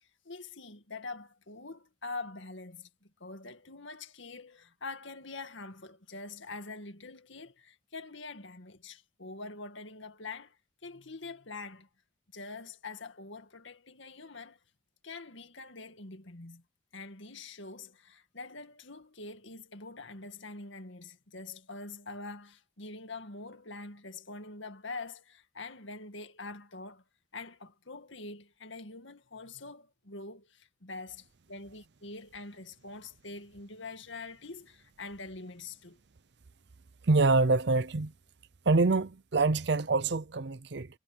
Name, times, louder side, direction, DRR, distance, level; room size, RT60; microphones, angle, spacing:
voice 1, 0.3-2.9 3.2-10.6 10.8-11.9 12.3-14.6 15.0-16.6 16.9-27.0 27.3-36.0, left 3 dB, 70° left, 2.1 m, -44 dB
voice 2, 37.1-38.1 38.7-40.9, right 3 dB, 55° right, 0.6 m, -25 dB
head